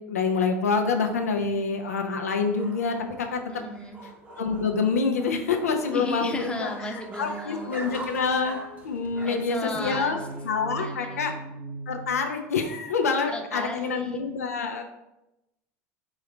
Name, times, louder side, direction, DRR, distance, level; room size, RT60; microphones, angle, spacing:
voice 1, 0.1-3.4 4.4-6.7 7.2-8.6 8.8-10.2 10.4-11.3 11.9-14.8, left 5 dB, 90° left, 4 dB, 0.5 m, -26 dB
sound 1, 0.9-10.4, right 1 dB, 20° right, 1.0 m, -44 dB
voice 2, 3.5-4.0 5.9-7.9 9.2-10.3 10.7-11.3 13.3-14.2, left 1 dB, 10° left, 2 dB, 0.8 m, -35 dB
sound 2, 7.2-9.3 9.7-12.9, right 2 dB, 50° right, 1.0 m, -41 dB
4.0 x 3.7 x 3.2 m, 0.91 s
hypercardioid pair, 85°, 8 cm